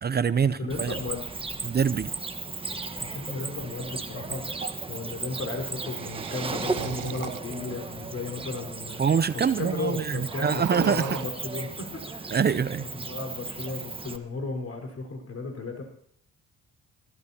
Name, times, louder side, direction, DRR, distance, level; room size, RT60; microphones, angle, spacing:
voice 1, 0.0-0.9 1.6-2.1 4.6-4.7 9.0-11.0 12.3-12.9, right 6 dB, 35° right, 14 dB, 0.6 m, -25 dB
voice 2, 0.6-1.4 3.0-9.1 9.3-12.3 12.7-15.8, left 3 dB, 50° left, 3 dB, 4.7 m, -35 dB
Cricket, 0.7-14.2, right 3 dB, 20° right, 1.3 m, -36 dB
sound 1, 3.6-4.8 5.7-7.7 8.3-8.4 8.6-8.7 8.9-9.3 9.6-9.8 10.1-11.3, right 15 dB, 85° right, 0.6 m, -39 dB
23.0 x 15.0 x 2.9 m, 0.66 s
cardioid pair, 90°, 30 cm